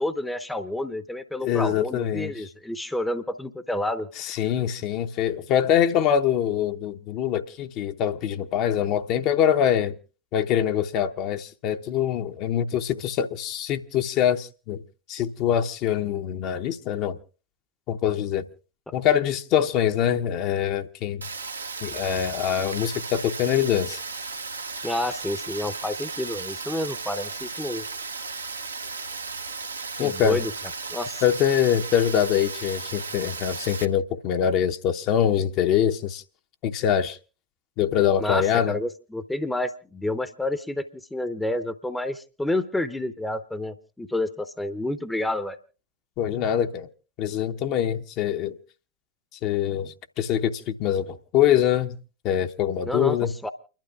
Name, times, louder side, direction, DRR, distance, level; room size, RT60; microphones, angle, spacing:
voice 1, 0.0-4.1 12.9-13.0 18.9-19.0 24.8-27.9 30.0-30.5 30.9-31.2 38.2-40.8 41.1-45.6 52.8-53.5, left 1 dB, 5° left, 0.7 m, -29 dB
voice 2, 1.4-2.3 4.2-9.9 10.3-14.8 15.1-17.2 17.9-18.4 18.9-21.2 21.8-24.0 30.0-30.4 31.2-36.2 36.6-37.2 37.8-38.8 46.2-46.9 47.2-48.6 49.4-52.0 52.2-53.3, left 9 dB, 40° left, 0.8 m, -24 dB
Rain, 21.2-33.8, right 4 dB, 80° right, 0.8 m, -35 dB
29.5 x 12.0 x 2.4 m
figure-of-eight pair, 90°, 0 cm